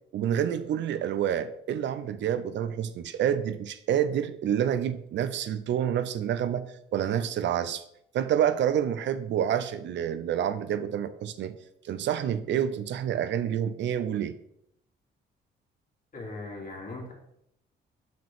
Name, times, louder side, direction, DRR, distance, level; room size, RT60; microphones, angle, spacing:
voice 1, 0.1-7.8 8.1-11.5 11.8-14.3, right 9 dB, 65° right, 12 dB, 0.5 m, -28 dB
voice 2, 16.1-17.1, left 2 dB, 45° left, -2 dB, 2.6 m, -39 dB
5.8 x 5.2 x 3.5 m, 0.75 s
cardioid pair, 90°, 20 cm